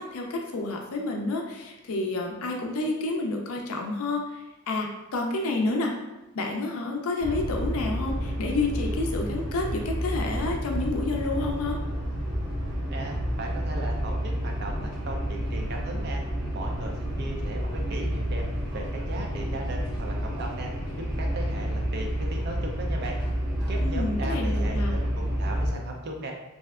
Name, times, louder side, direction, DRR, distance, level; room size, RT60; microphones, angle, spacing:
voice 1, 0.0-5.9 6.3-11.8 23.8-25.0, left 2 dB, 75° left, 2 dB, 0.4 m, -29 dB
sound 1, 7.2-25.7, equal, 10° right, 1.5 m, -30 dB
voice 2, 12.9-16.2 16.5-18.4 18.7-20.7 21.2-23.2 23.7-26.3, right 2 dB, 50° right, 1 dB, 0.5 m, -37 dB
3.2 x 2.7 x 2.3 m, 0.98 s
head